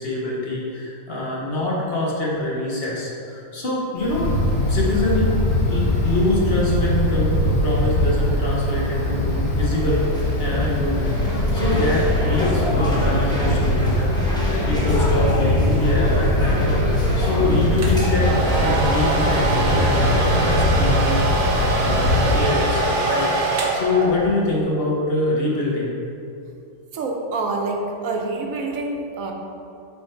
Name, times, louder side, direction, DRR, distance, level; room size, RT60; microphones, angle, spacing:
voice 1, 0.0-4.3 4.7-5.4 5.7-10.0 10.4-14.1 14.6-18.3 18.6-25.9, left 2 dB, 50° left, -4 dB, 1.3 m, -24 dB
Wind, 4.0-22.4, left 1 dB, 75° left, 1.5 m, -21 dB
sound 1, 9.4-20.6, left 1 dB, 5° left, 1.0 m, -28 dB
Domestic sounds home sounds, 17.8-24.5, right 2 dB, 45° right, 0.8 m, -23 dB
voice 2, 26.9-29.3, right 3 dB, 85° right, 2 dB, 1.1 m, -26 dB
7.1 x 3.6 x 4.4 m, 2.7 s
omnidirectional pair, 1.4 m